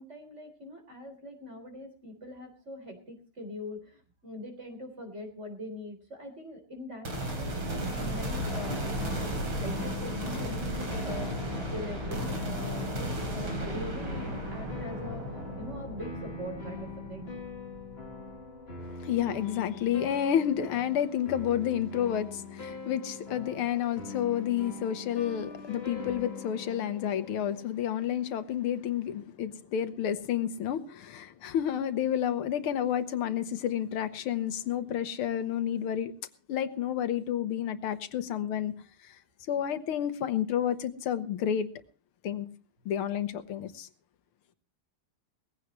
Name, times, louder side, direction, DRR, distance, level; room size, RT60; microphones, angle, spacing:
voice 1, 0.0-9.0 9.6-11.4 11.7-15.2 15.6-17.3, left 1 dB, 30° right, 3.9 m, -42 dB
sound 1, 7.0-18.4, right 1 dB, 90° right, 4.8 m, -35 dB
sound 2, 8.5-27.7, left 4 dB, 30° left, 2.1 m, -42 dB
voice 2, 18.8-36.1 36.5-38.7 39.0-39.2 39.5-41.7 42.2-42.5 42.9-43.9, left 9 dB, 85° left, 1.9 m, -30 dB
19.5 x 15.5 x 3.1 m
omnidirectional pair, 2.3 m